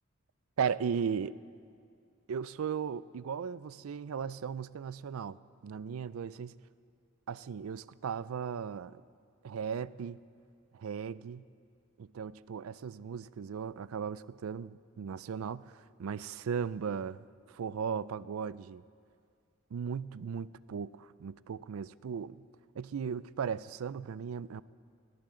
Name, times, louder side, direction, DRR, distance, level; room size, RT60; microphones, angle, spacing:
voice 1, 0.6-1.3 2.3-5.4 5.6-6.5 7.3-9.0 9.4-10.2 10.7-11.4 12.0-17.2 17.5-18.8 19.7-22.4 22.8-24.6, right 7 dB, 85° right, 18 dB, 0.4 m, -37 dB
20.5 x 18.0 x 3.8 m, 2.3 s
head